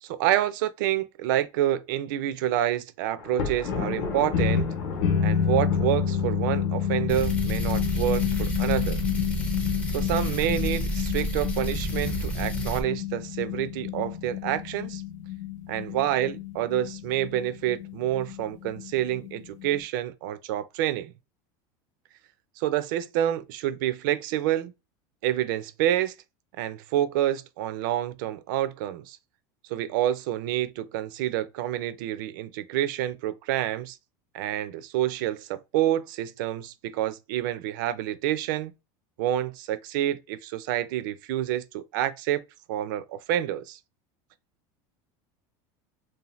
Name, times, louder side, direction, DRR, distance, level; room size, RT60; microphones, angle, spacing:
voice 1, 0.0-4.7 5.2-9.0 9.9-15.0 15.7-21.1 22.6-24.7 25.2-26.1 26.6-29.2 29.7-34.0 34.3-38.7 39.2-42.4 42.7-43.8, right 12 dB, 65° right, 0.4 m, -28 dB
Thunder, 3.2-7.3, left 4 dB, 45° left, 0.8 m, -36 dB
sound 1, 3.7-19.8, left 8 dB, 80° left, 0.7 m, -29 dB
sound 2, 7.1-12.8, right 1 dB, 10° left, 0.4 m, -30 dB
2.7 x 2.1 x 3.0 m
supercardioid pair, 170°, 11 cm